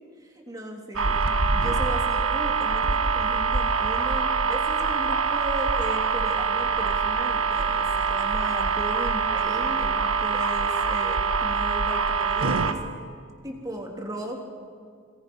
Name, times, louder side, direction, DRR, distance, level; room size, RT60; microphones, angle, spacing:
voice 1, 0.2-1.2 1.5-13.1 13.4-14.4, right 1 dB, 15° right, 0 dB, 3.2 m, -36 dB
sound 1, 1.0-12.7, right 5 dB, 75° right, 1.4 m, -24 dB
27.0 x 23.5 x 5.5 m, 2.1 s
head